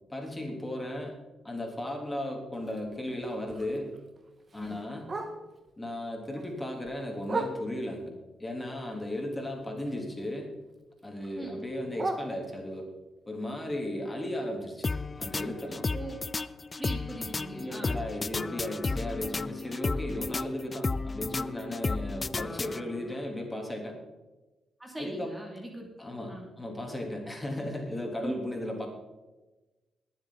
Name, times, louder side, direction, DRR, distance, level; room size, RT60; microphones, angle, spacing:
voice 1, 0.1-1.2 1.4-3.9 4.5-5.1 5.8-8.1 8.4-10.5 11.0-12.9 13.3-14.9 15.2-15.9 17.5-24.0 25.0-25.4 26.0-28.9, left 1 dB, 20° left, 1 dB, 3.5 m, -35 dB
Bark, 2.5-5.7 6.1-8.0 8.5-10.3 10.6-12.9 13.4-17.3 17.6-17.7 18.0-18.4 18.8-18.9 19.3-19.4 19.9-20.0, right 3 dB, 40° right, 1.6 m, -41 dB
sound 1, 14.8-23.2, left 3 dB, 35° left, 0.4 m, -33 dB
voice 2, 16.8-18.0 24.8-25.9 26.3-26.5 28.2-28.3, right 2 dB, 15° right, 1 dB, 2.8 m, -40 dB
21.0 x 7.6 x 4.1 m, 1.1 s
supercardioid pair, 50°, 0 cm